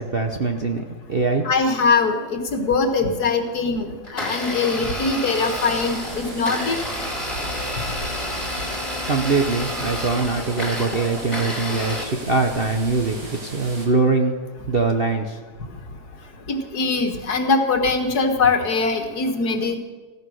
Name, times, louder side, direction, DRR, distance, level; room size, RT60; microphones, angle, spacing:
voice 1, 0.0-1.4 9.1-14.3 14.7-15.4, right 3 dB, 40° right, 4 dB, 1.0 m, -22 dB
voice 2, 1.4-6.8 16.5-19.8, left 4 dB, 55° left, 6 dB, 2.0 m, -22 dB
Domestic sounds home sounds, 4.0-12.0, left 1 dB, 15° left, 2.7 m, -30 dB
sound 1, 5.3-13.9, right 1 dB, 75° right, 4.3 m, -36 dB
16.0 x 13.5 x 6.4 m, 1.3 s
omnidirectional pair, 2.0 m